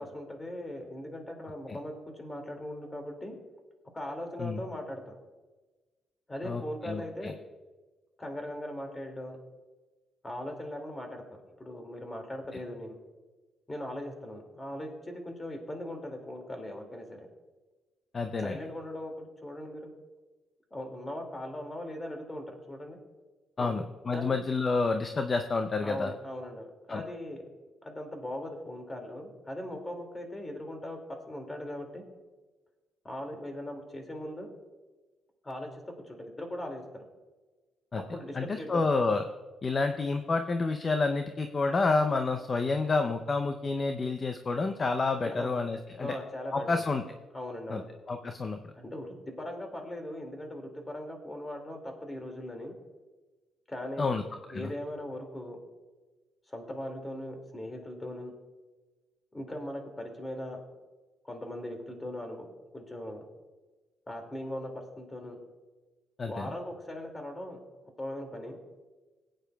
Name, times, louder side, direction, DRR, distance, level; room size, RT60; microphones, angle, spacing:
voice 1, 0.0-3.4 3.9-5.1 6.3-7.4 8.2-9.4 10.2-13.0 13.7-17.3 18.4-19.9 20.7-23.0 23.6-23.8 24.1-24.4 25.8-27.4 27.8-31.0 31.3-32.0 33.0-34.5 35.4-35.8 36.1-37.1 38.0-38.9 45.3-45.5 46.0-46.8 47.3-47.8 48.7-52.7 53.7-54.2 54.5-55.6 56.5-58.3 59.3-60.6 61.2-62.5 62.7-63.3 64.1-64.7 65.0-65.4 66.2-67.6 68.0-68.6, left 1 dB, 20° left, 3 dB, 2.2 m, -39 dB
voice 2, 6.4-7.3 18.1-18.6 23.6-26.1 26.9-27.0 37.9-38.0 38.3-39.2 39.6-46.1 46.5-47.0 47.7-47.8 48.1-48.7 54.0-54.2 54.5-54.7 66.2-66.5, left 3 dB, 35° left, 7 dB, 0.6 m, -29 dB
18.5 x 9.0 x 2.3 m, 1.2 s
cardioid pair, 90°, 0 cm